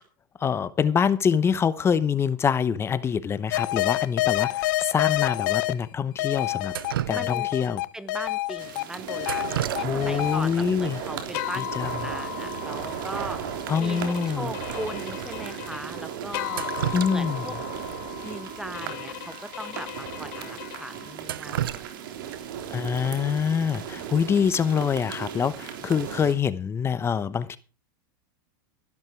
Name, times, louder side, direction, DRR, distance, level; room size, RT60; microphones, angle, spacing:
voice 1, 0.4-6.7 7.1-7.8 9.8-11.0 11.6-11.9 13.7-14.5 16.9-17.5 18.2-18.4 22.7-27.6, left 7 dB, 20° left, 1.0 m, -25 dB
sound 1, 3.5-5.7 6.2-21.1, left 17 dB, 60° left, 1.0 m, -31 dB
Drip, 6.7-7.7 9.2-10.3 10.6-10.7 11.6-11.7 12.0-12.2 12.5-12.6 13.1-13.2 13.6-13.7 14.3-14.4 15.1-15.2 16.3-17.5 17.9-18.0 19.3-19.4 19.8-19.9 20.4-20.5 21.0-22.6 24.6-24.9 25.3-25.7, right 12 dB, 85° right, 0.8 m, -33 dB
voice 2, 7.1-7.5 7.9-13.5 13.8-16.7 17.1-17.6 18.2-21.8, right 1 dB, 5° right, 0.9 m, -39 dB
sound 2, 8.6-26.3, right 8 dB, 70° right, 3.7 m, -36 dB
14.0 x 12.0 x 4.6 m
hypercardioid pair, 120°, 12 cm